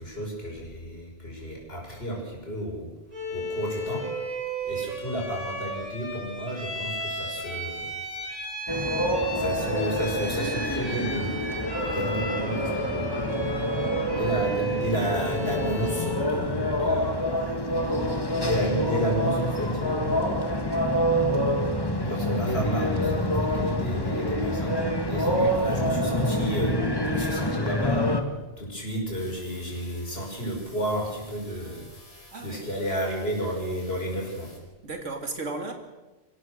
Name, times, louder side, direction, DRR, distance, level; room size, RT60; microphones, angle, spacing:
voice 1, 0.0-2.9 3.3-4.0 4.6-7.9 9.0-11.4 11.8-13.5 14.1-17.3 18.4-20.4 22.0-28.1 28.6-31.8 32.4-34.5, equal, 55° left, -1 dB, 6.1 m, -32 dB
Bowed string instrument, 3.1-16.3, right 1 dB, 30° right, 7.7 m, -34 dB
sound 1, 8.7-28.2, equal, 20° left, 1.6 m, -27 dB
voice 2, 11.8-12.2 25.3-25.5 32.3-32.7 34.8-35.7, right 3 dB, 80° right, 4 dB, 2.9 m, -36 dB
sound 2, 29.2-34.6, left 1 dB, 70° left, 4.9 m, -52 dB
26.0 x 16.5 x 6.5 m, 1.2 s
omnidirectional pair, 1.2 m